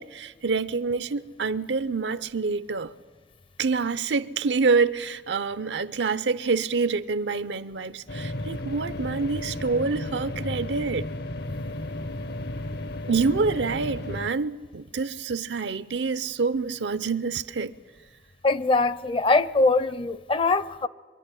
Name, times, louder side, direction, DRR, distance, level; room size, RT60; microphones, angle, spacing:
voice 1, 0.0-2.9 3.6-11.0 13.1-17.7, right 4 dB, 85° right, 0.6 m, -27 dB
sound 1, 8.1-14.3, left 1 dB, 65° left, 0.9 m, -33 dB
voice 2, 18.4-20.9, left 3 dB, 30° left, 0.5 m, -22 dB
23.5 x 11.5 x 9.9 m
head